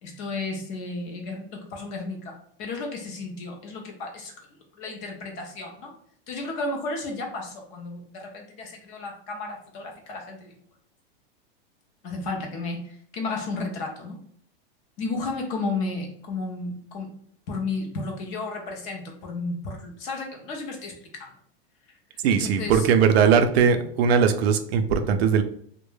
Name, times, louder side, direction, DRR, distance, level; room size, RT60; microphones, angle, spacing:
voice 1, 0.0-4.3 4.8-5.9 6.3-10.6 12.0-14.2 15.0-17.2 17.5-21.3 22.3-22.9, left 3 dB, 25° left, 1 dB, 0.3 m, -33 dB
voice 2, 22.2-25.4, right 6 dB, 90° right, 8 dB, 0.5 m, -20 dB
2.2 x 2.1 x 3.1 m, 0.62 s
supercardioid pair, 155°, 30 cm